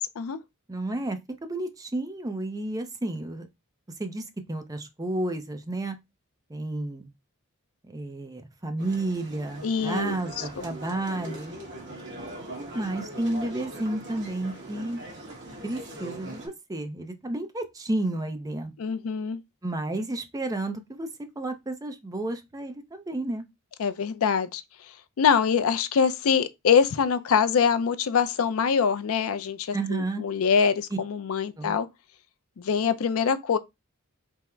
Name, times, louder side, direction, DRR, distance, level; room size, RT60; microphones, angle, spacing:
voice 1, 0.7-3.5 4.0-6.0 6.5-7.1 7.8-11.5 12.7-15.0 15.6-18.7 19.6-23.4 29.7-30.2 30.9-31.0 31.6-31.7, right 2 dB, 15° right, 0.5 m, -31 dB
sound 1, 8.8-16.5, right 1 dB, 55° right, 1.5 m, -41 dB
voice 2, 9.6-10.4 18.8-19.4 23.8-24.6 25.2-31.9 32.6-33.6, left 6 dB, 70° left, 0.4 m, -24 dB
3.5 x 2.0 x 4.3 m
head